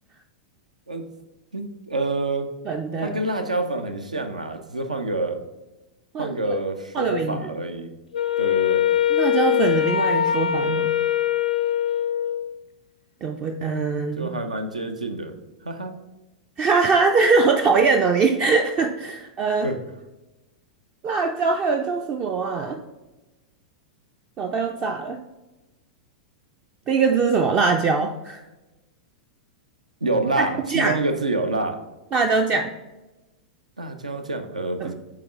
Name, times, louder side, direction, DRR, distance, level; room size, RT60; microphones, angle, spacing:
voice 1, 1.5-2.5 3.0-5.4 6.2-7.9 8.4-8.9 14.2-15.3 15.6-16.0 19.6-19.8 30.0-31.8 33.8-34.9, right 2 dB, 80° right, 7 dB, 0.6 m, -27 dB
voice 2, 2.7-3.2 6.1-6.6 6.9-7.5 9.1-10.9 13.2-14.3 16.6-19.7 21.0-22.8 24.4-25.2 26.9-28.4 30.4-31.0 32.1-32.7 34.8-34.9, right 4 dB, 30° right, 5 dB, 0.4 m, -22 dB
Wind instrument woodwind instrument, 8.1-12.5, left 10 dB, 75° left, 0.4 m, -22 dB
8.4 x 3.2 x 3.5 m, 1.1 s
figure-of-eight pair, 95°, 4 cm